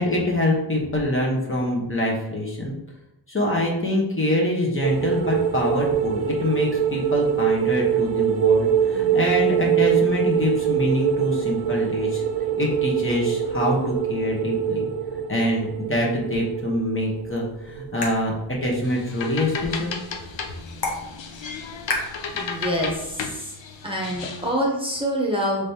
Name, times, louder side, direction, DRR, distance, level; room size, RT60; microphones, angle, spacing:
voice 1, 0.0-2.7 3.3-12.2 12.6-14.9 15.3-20.0, left 1 dB, 30° left, -2 dB, 1.0 m, -24 dB
sound 1, 4.8-18.2 18.5-18.7, right 9 dB, 75° right, 0.5 m, -24 dB
sound 2, 17.1-23.1, left 2 dB, 60° left, 1.1 m, -36 dB
sound 3, 18.8-24.5, left 5 dB, 85° left, 0.6 m, -34 dB
voice 2, 22.3-23.0 23.3-23.4 23.8-25.7, equal, 10° right, -2 dB, 0.9 m, -25 dB
5.1 x 3.4 x 2.8 m, 0.86 s
wide cardioid pair, 105°, 43 cm